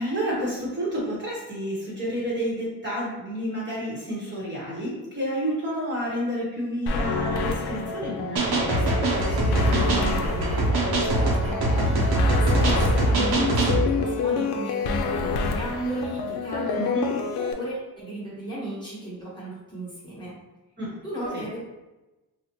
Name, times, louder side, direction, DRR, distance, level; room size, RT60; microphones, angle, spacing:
voice 1, 0.0-10.6 16.7-17.1 20.8-21.0 21.3-21.5, equal, 30° right, -7 dB, 1.0 m, -30 dB
sound 1, 6.9-17.5, left 4 dB, 75° left, 0.5 m, -28 dB
sound 2, 8.4-13.8, right 1 dB, 75° right, 0.8 m, -22 dB
voice 2, 11.0-17.0 17.4-20.3 21.0-21.6, right 1 dB, 10° left, -8 dB, 1.1 m, -35 dB
3.9 x 2.1 x 2.9 m, 1.1 s
wide cardioid pair, 140°, 39 cm